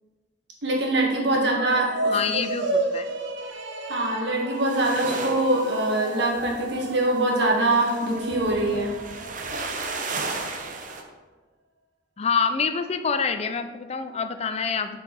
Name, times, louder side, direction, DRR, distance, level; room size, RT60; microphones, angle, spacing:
voice 1, 0.6-2.4 3.9-8.9, right 2 dB, 60° right, -1 dB, 1.7 m, -24 dB
sound 1, 1.5-10.0, right 2 dB, 80° right, 0.9 m, -32 dB
voice 2, 2.1-3.0 12.2-15.0, left 5 dB, 35° left, 9 dB, 0.4 m, -26 dB
sound 2, 4.5-11.0, right 3 dB, 45° right, 0.8 m, -35 dB
6.6 x 4.7 x 5.3 m, 1.3 s
head